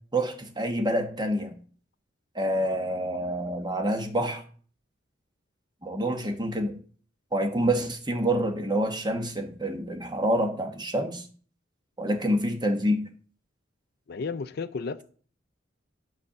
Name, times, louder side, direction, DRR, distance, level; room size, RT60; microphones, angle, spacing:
voice 1, 0.1-1.6 2.3-4.4 5.8-6.7 7.3-11.3 12.0-13.0, right 1 dB, 25° right, 1.2 m, -27 dB
voice 2, 14.1-15.0, left 4 dB, 55° left, 0.4 m, -33 dB
9.7 x 4.2 x 6.6 m
head